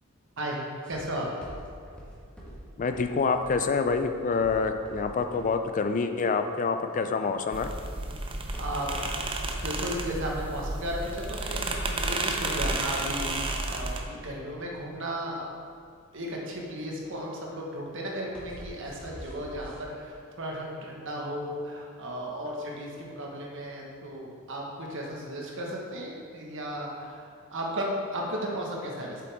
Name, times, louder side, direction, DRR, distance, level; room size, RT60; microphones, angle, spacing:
sound 1, 0.8-19.8, equal, 5° left, 1.5 m, -47 dB
voice 1, 0.9-1.3 8.6-8.9 9.6-15.5 16.1-29.2, equal, 60° right, -2 dB, 1.5 m, -35 dB
voice 2, 2.8-7.7, left 4 dB, 35° left, 7 dB, 0.4 m, -27 dB
sound 2, 7.5-14.0, right 2 dB, 25° right, 0.6 m, -32 dB
7.7 x 7.6 x 3.6 m, 2.1 s
head